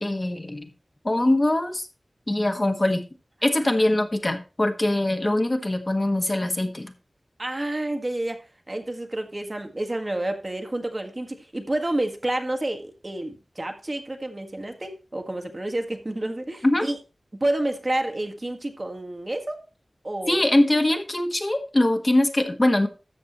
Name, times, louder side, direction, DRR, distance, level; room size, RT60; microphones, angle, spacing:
voice 1, 0.0-0.7 1.0-1.9 2.3-3.0 3.4-6.9 16.6-16.9 20.3-22.9, left 1 dB, 35° left, 5 dB, 1.4 m, -22 dB
voice 2, 7.4-17.0 17.3-19.6 20.0-20.4, right 1 dB, 40° right, 5 dB, 1.5 m, -29 dB
13.0 x 7.4 x 3.0 m, 0.32 s
wide cardioid pair, 60°, 0 cm